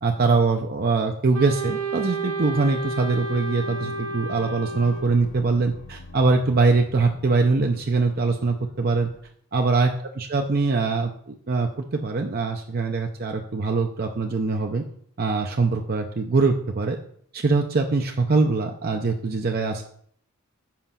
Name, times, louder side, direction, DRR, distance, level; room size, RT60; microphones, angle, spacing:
voice 1, 0.0-9.1 9.5-9.9 10.2-14.8 15.2-17.0 17.3-19.8, right 3 dB, 45° right, 3 dB, 0.5 m, -23 dB
Wind instrument woodwind instrument, 1.3-5.3, right 3 dB, 85° right, 0.9 m, -31 dB
sound 1, 3.6-9.2, left 2 dB, 55° left, 0.6 m, -46 dB
7.5 x 5.0 x 5.6 m, 0.64 s
head